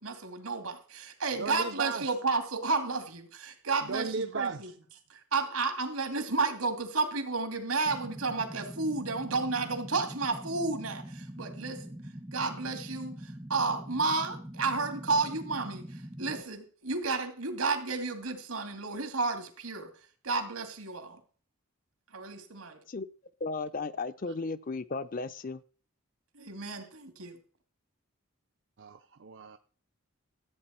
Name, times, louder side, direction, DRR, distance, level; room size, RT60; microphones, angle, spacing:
voice 1, 0.0-4.7 5.1-12.0 12.3-19.9 20.2-21.2 22.1-22.8 26.3-27.4, right 3 dB, 85° right, 2.6 m, -32 dB
voice 2, 1.4-2.1 3.8-4.7 28.8-29.6, right 4 dB, 55° right, 0.6 m, -36 dB
sound 1, 7.8-16.4, equal, 10° right, 0.6 m, -44 dB
voice 3, 23.4-25.6, left 3 dB, 40° left, 0.5 m, -35 dB
14.0 x 8.7 x 4.4 m
head